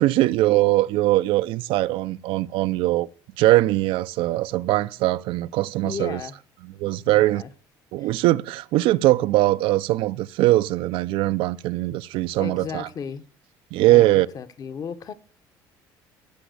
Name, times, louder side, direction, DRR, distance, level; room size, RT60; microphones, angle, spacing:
voice 1, 0.0-3.1 3.4-6.2 6.8-7.4 7.9-12.9 13.7-14.3, right 17 dB, 75° right, 0.6 m, -21 dB
voice 2, 5.8-6.4 7.0-7.5 8.0-8.1 12.4-13.2 13.8-15.1, left 6 dB, 45° left, 1.4 m, -35 dB
16.0 x 6.1 x 8.1 m
cardioid pair, 110°, 9 cm